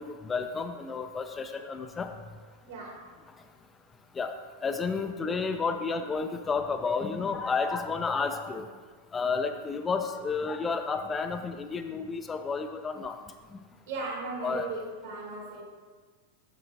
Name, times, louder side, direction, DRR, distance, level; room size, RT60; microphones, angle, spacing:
voice 1, 0.0-2.1 4.1-4.3 4.6-8.7 9.1-13.2 13.5-13.6 14.4-14.7, left 4 dB, 20° left, 6 dB, 0.4 m, -31 dB
voice 2, 2.7-3.0 13.9-15.6, right 3 dB, 60° right, -3 dB, 2.4 m, -37 dB
9.4 x 6.8 x 2.6 m, 1.5 s
figure-of-eight pair, 90°, 0 cm